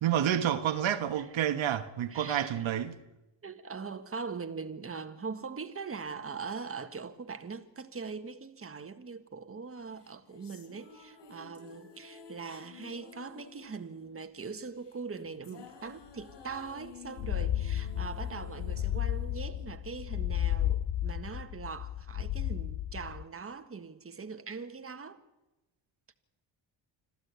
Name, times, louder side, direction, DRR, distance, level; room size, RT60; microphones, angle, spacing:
voice 1, 0.0-3.0, right 10 dB, 75° right, 1.5 m, -29 dB
voice 2, 2.1-2.6 3.4-25.2, right 5 dB, 30° right, 1.7 m, -41 dB
sound 1, 9.9-20.3, left 5 dB, 60° left, 3.4 m, -52 dB
sound 2, 16.2-16.3 16.5-16.6 17.1-23.2, left 12 dB, 80° left, 1.0 m, -33 dB
26.0 x 15.0 x 8.3 m
cardioid pair, 100°, 47 cm